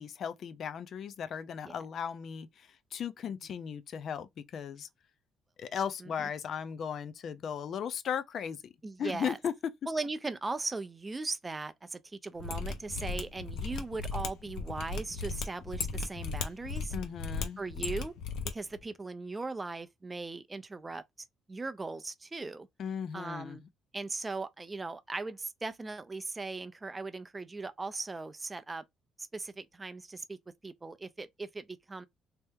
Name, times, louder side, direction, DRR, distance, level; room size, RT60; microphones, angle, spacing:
voice 1, 0.0-4.9 5.6-8.7 9.0-9.5 16.9-17.6 22.8-23.7, left 7 dB, 45° left, 0.5 m, -37 dB
voice 2, 8.8-9.4 9.9-16.9 17.6-18.1 18.5-21.0 21.5-22.7 23.1-23.6 23.9-28.8 29.2-30.4 30.6-32.0, right 3 dB, 15° right, 0.4 m, -38 dB
Mechanisms, 12.4-18.5 18.8-18.9, left 4 dB, 80° left, 0.8 m, -36 dB
3.2 x 2.9 x 3.5 m
cardioid pair, 155°, 0 cm